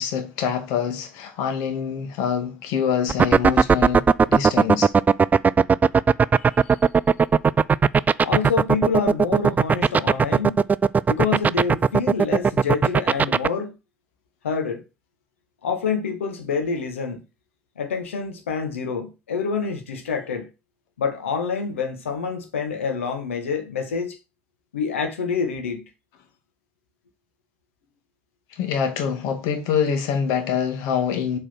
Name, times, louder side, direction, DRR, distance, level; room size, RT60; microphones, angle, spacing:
voice 1, 0.0-4.9 28.5-31.4, left 7 dB, 60° left, 2.1 m, -25 dB
sound 1, 3.1-13.5, right 5 dB, 25° right, 0.4 m, -16 dB
voice 2, 6.4-6.7 8.2-10.6 11.1-13.7 14.4-14.8 15.6-17.2 17.8-20.5 21.0-24.2 24.7-25.8, left 5 dB, 80° left, 1.9 m, -27 dB
7.7 x 4.7 x 5.9 m
figure-of-eight pair, 60°, 7 cm